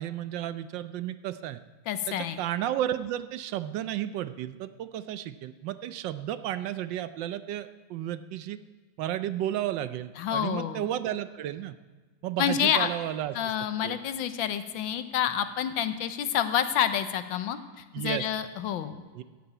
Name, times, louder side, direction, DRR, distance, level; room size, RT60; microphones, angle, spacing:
voice 1, 0.0-1.6 2.1-8.6 9.0-11.8 12.2-13.5 13.8-14.0 17.9-18.3 19.1-19.2, right 12 dB, 75° right, 13 dB, 1.2 m, -33 dB
voice 2, 1.9-2.4 10.2-10.8 12.4-12.9 13.3-19.0, left 9 dB, 80° left, 11 dB, 1.5 m, -28 dB
14.0 x 7.0 x 9.2 m, 1.4 s
omnidirectional pair, 2.1 m